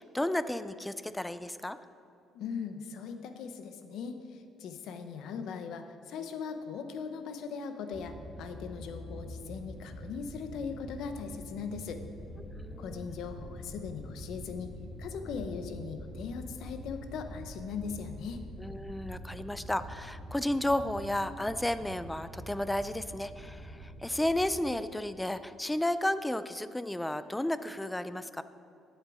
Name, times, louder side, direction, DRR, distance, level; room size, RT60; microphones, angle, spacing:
voice 1, 0.0-1.8 12.4-13.1 18.6-28.4, left 1 dB, 5° left, 13 dB, 0.3 m, -33 dB
voice 2, 2.3-12.0 12.8-14.7 15.0-18.4, left 6 dB, 70° left, 8 dB, 0.9 m, -39 dB
sound 1, 7.9-24.6, right 1 dB, 20° right, 1.4 m, -46 dB
sound 2, 12.2-19.2, left 2 dB, 45° left, 2.3 m, -51 dB
12.0 x 8.1 x 4.9 m, 2.7 s
cardioid pair, 155°, 0 cm